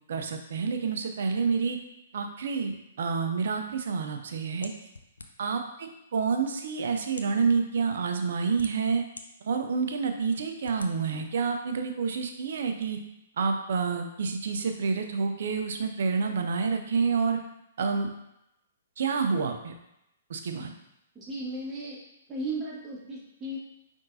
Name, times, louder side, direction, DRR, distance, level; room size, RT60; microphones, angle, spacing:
voice 1, 0.1-1.8 2.1-4.7 5.4-9.0 9.4-13.0 13.4-17.4 17.8-18.1 19.0-19.7 20.3-20.7, right 5 dB, 65° right, 5 dB, 0.6 m, -28 dB
sound 1, 4.6-5.6 6.4-6.5 7.1-7.4 8.2-9.3 9.8-9.9 10.6-10.9, left 3 dB, 85° left, 0.5 m, -45 dB
voice 2, 21.1-22.0 22.3-23.6, right 1 dB, 15° right, -6 dB, 1.7 m, -35 dB
5.2 x 3.5 x 2.7 m, 0.84 s
figure-of-eight pair, 120°, 0 cm